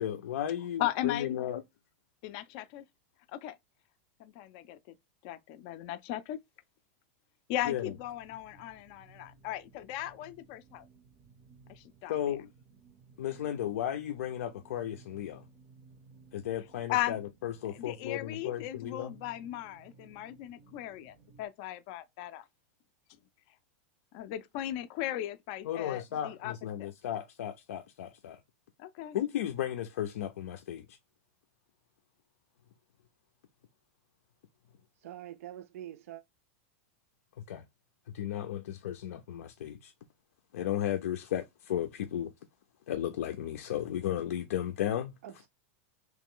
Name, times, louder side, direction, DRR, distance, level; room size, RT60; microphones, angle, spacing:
voice 1, 0.0-1.6 7.7-7.9 12.1-12.5 13.2-15.4 16.3-19.2 25.6-28.4 29.1-31.0 37.5-37.6 38.1-39.9 40.5-42.3 42.9-45.1, left 11 dB, 90° left, 0.5 m, -34 dB
voice 2, 0.8-1.3 2.2-2.8 3.3-3.6 4.2-4.9 5.2-6.4 7.5-10.8 11.7-12.4 16.9-17.2 17.7-22.4 24.1-26.5 26.8-26.9 28.8-29.2, left 13 dB, 35° left, 0.3 m, -37 dB
sound 1, 7.5-21.5, right 4 dB, 25° right, 0.5 m, -59 dB
voice 3, 35.0-36.2 45.2-45.5, right 12 dB, 75° right, 0.4 m, -45 dB
3.1 x 3.0 x 3.6 m
supercardioid pair, 175°, 8 cm